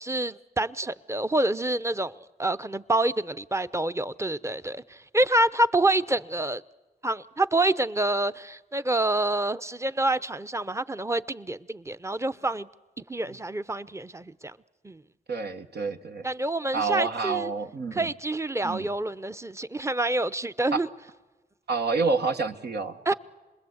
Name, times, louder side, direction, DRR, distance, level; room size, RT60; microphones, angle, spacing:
voice 1, 0.0-6.6 7.0-12.7 13.1-14.6 14.8-15.0 16.2-17.5 17.9-20.9 23.1-23.2, right 2 dB, 15° right, 0.8 m, -27 dB
voice 2, 15.3-16.3 16.7-18.1 18.6-18.9 20.7-20.8 21.7-23.1, right 4 dB, 70° right, 1.4 m, -28 dB
27.0 x 21.0 x 8.1 m
supercardioid pair, 40°, 18 cm